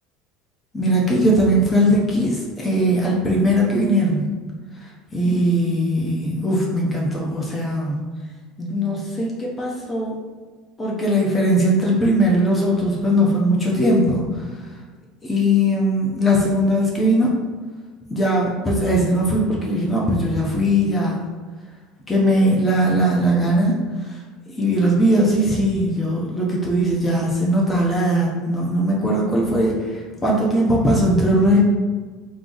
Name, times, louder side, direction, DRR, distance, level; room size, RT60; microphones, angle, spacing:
voice 1, 0.7-4.3 5.1-8.0 8.6-10.2 10.8-14.5 15.2-17.3 18.1-21.2 22.1-23.8 24.0-24.2 24.5-31.6, equal, 20° left, -3 dB, 0.7 m, -19 dB
3.5 x 2.0 x 3.8 m, 1.4 s
figure-of-eight pair, 70°, 0 cm